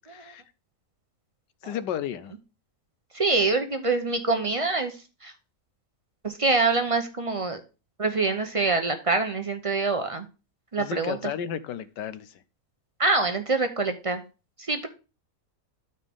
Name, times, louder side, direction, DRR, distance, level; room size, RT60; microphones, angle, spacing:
voice 1, 0.1-0.4 1.6-2.3 10.8-12.4, left 9 dB, 85° left, 13 dB, 1.4 m, -33 dB
voice 2, 3.1-4.9 5.2-5.3 6.2-7.6 8.0-10.3 10.7-11.3 13.0-14.2 14.6-14.9, right 3 dB, 40° right, 6 dB, 0.4 m, -25 dB
12.5 x 4.4 x 3.6 m, 0.32 s
omnidirectional pair, 1.8 m